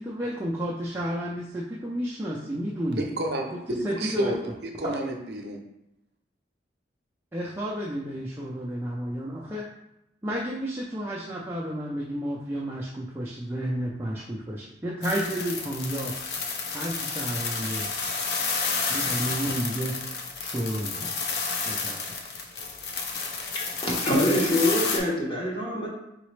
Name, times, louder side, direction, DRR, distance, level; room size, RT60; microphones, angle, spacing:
voice 1, 0.0-3.0 3.5-3.6 3.8-4.3 4.8-5.0 7.3-9.7 10.2-16.1 16.7-17.9 18.9-19.9 20.4-21.1 21.7-22.2, equal, 15° right, -5 dB, 0.4 m, -31 dB
voice 2, 3.0-5.6, right 1 dB, 65° right, 2 dB, 0.6 m, -30 dB
sound 1, 15.0-25.0, left 4 dB, 60° left, 0.6 m, -31 dB
voice 3, 23.5-25.9, left 1 dB, 30° left, -3 dB, 1.0 m, -25 dB
4.1 x 3.9 x 3.2 m, 0.88 s
head